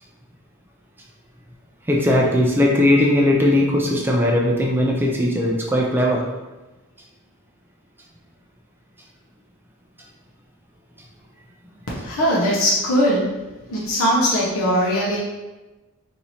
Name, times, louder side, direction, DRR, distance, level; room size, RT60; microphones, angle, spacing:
voice 1, 1.9-6.3, left 1 dB, 10° right, -1 dB, 0.3 m, -18 dB
voice 2, 12.0-13.3 13.7-15.2, equal, 70° left, -6 dB, 0.8 m, -20 dB
3.0 x 2.7 x 4.1 m, 1.1 s
head